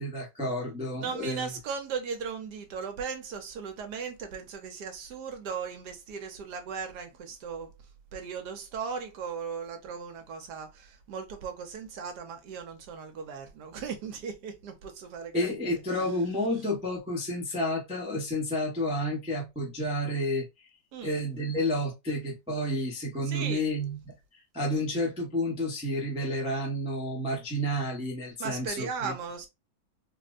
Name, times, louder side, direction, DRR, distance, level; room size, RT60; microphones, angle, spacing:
voice 1, 0.0-1.5 15.3-20.5 21.0-29.1, equal, 10° right, 0.3 m, -30 dB
voice 2, 1.0-7.7 8.1-16.0 20.9-21.2 23.2-23.7 28.4-29.5, right 6 dB, 65° right, 1.1 m, -37 dB
4.1 x 2.1 x 2.4 m
omnidirectional pair, 2.1 m